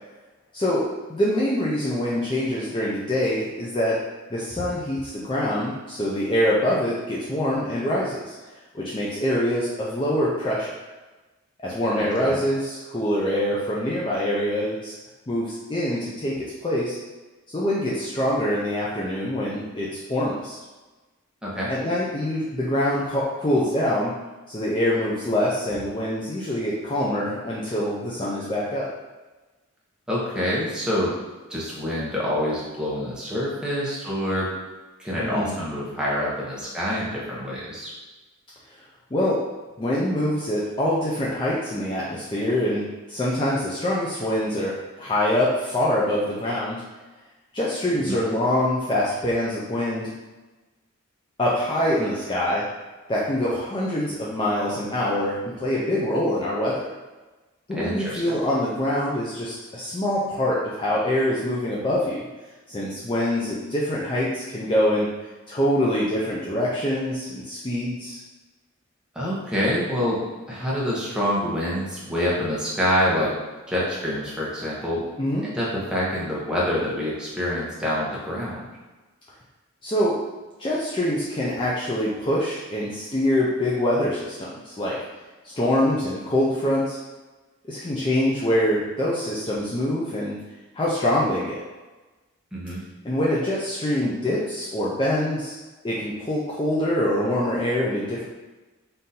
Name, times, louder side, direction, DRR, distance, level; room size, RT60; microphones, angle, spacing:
voice 1, 0.5-4.0 4.3-10.9 11.6-14.9 15.3-17.0 17.5-20.6 21.7-24.1 24.5-28.9 35.1-35.6 39.1-39.4 39.8-46.8 47.5-50.1 51.4-52.7 53.1-56.9 57.7-62.2 62.7-65.1 65.5-68.2 75.2-75.5 79.8-80.2 80.6-85.0 85.5-87.0 87.7-90.4 90.7-91.6 93.0-95.6 95.8-98.3, left 1 dB, 20° left, -6 dB, 0.4 m, -25 dB
voice 2, 12.0-12.4 21.4-21.7 30.1-31.1 31.5-34.5 35.0-37.9 48.0-48.2 57.7-58.2 69.1-70.2 70.5-73.3 73.7-75.0 75.4-78.6 92.5-92.8, equal, 5° right, -7 dB, 0.9 m, -26 dB
3.7 x 2.6 x 4.1 m, 1.2 s
head